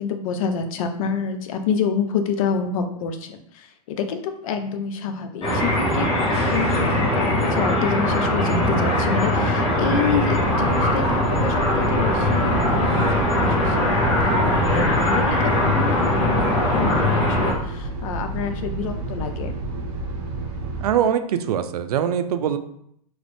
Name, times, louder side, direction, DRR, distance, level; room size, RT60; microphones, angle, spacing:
voice 1, 0.0-19.6, left 6 dB, 65° left, 7 dB, 0.5 m, -28 dB
sound 1, 5.4-17.5, left 1 dB, 30° left, 1.3 m, -21 dB
sound 2, 9.8-20.9, right 2 dB, 50° right, 0.9 m, -31 dB
voice 2, 20.8-22.6, right 9 dB, 85° right, 10 dB, 0.4 m, -23 dB
3.1 x 2.5 x 3.3 m, 0.70 s
hypercardioid pair, 125°, 19 cm